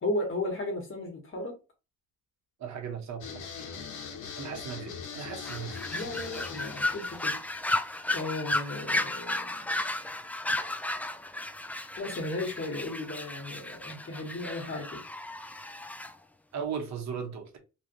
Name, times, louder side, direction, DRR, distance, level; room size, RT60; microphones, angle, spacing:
voice 1, 0.0-1.6 5.9-7.4 8.1-9.8 12.0-15.0, left 2 dB, 45° left, 1.5 m, -35 dB
voice 2, 2.6-3.7 4.4-5.8 16.5-17.6, right 7 dB, 65° right, 1.3 m, -37 dB
sound 1, 3.2-8.2, left 6 dB, 85° left, 1.0 m, -42 dB
sound 2, 5.4-16.1, left 2 dB, 5° left, 0.3 m, -34 dB
3.2 x 2.5 x 3.1 m
cardioid pair, 90°, 30 cm